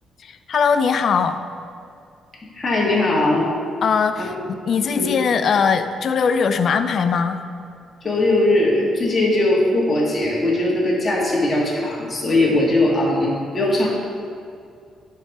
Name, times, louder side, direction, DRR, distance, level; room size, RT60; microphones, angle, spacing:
voice 1, 0.2-1.4 3.8-7.4, left 6 dB, 55° left, 10 dB, 0.4 m, -20 dB
voice 2, 2.5-3.5 4.2-4.3 5.0-5.2 8.0-13.9, left 1 dB, 30° left, -4 dB, 1.7 m, -19 dB
10.0 x 3.7 x 4.1 m, 2.4 s
cardioid pair, 90°, 0 cm